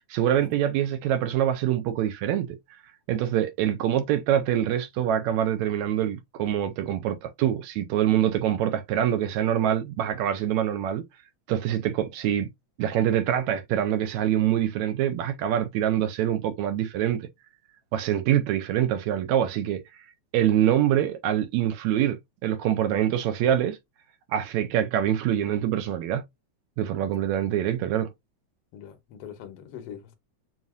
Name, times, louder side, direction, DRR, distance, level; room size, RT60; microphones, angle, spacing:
voice 1, 0.1-2.8 3.1-11.0 11.5-12.5 12.8-17.3 17.9-19.8 20.3-23.8 24.3-26.2 26.8-28.1, right 11 dB, 75° right, 1.8 m, -25 dB
voice 2, 28.7-30.1, left 9 dB, 65° left, 1.7 m, -43 dB
7.2 x 2.6 x 2.3 m
omnidirectional pair, 3.4 m